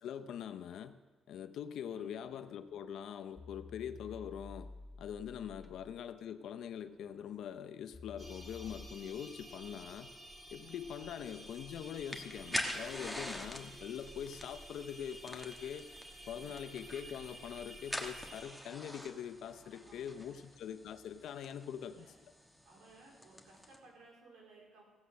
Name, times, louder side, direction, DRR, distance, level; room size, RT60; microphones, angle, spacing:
voice 1, 0.0-1.0 1.3-4.7 5.0-10.1 10.5-15.9 16.3-22.1, left 9 dB, 75° left, 11 dB, 0.6 m, -43 dB
voice 2, 1.9-2.4 5.4-5.9 10.6-11.2 13.2-13.5 16.3-16.7 19.6-20.4 21.9-22.2 22.6-24.8, right 2 dB, 85° right, -1 dB, 4.2 m, -61 dB
sound 1, 2.6-2.8 3.4-6.2 6.6-8.9, left 3 dB, 25° left, 0.5 m, -52 dB
sound 2, 8.2-18.4, right 1 dB, 20° right, 4.5 m, -52 dB
sound 3, 11.3-23.8, left 1 dB, ahead, 1.5 m, -46 dB
16.0 x 8.2 x 6.4 m, 1.4 s
cardioid pair, 90°, 0 cm